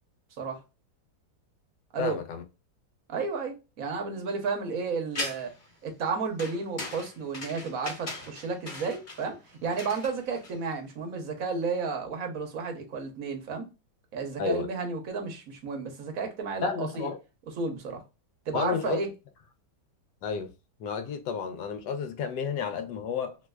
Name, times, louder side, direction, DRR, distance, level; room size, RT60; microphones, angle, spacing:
voice 1, 2.0-2.4 14.4-14.7 16.6-17.2 18.5-19.0 20.2-20.5 20.8-23.4, left 6 dB, 80° left, 1.2 m, -31 dB
voice 2, 3.1-5.5 5.8-13.7 14.1-17.1 17.6-18.0 18.5-19.1, right 4 dB, 60° right, 1.1 m, -32 dB
sound 1, 5.1-5.7 6.4-10.9, left 2 dB, 35° left, 0.9 m, -39 dB
3.1 x 3.1 x 2.2 m
omnidirectional pair, 1.9 m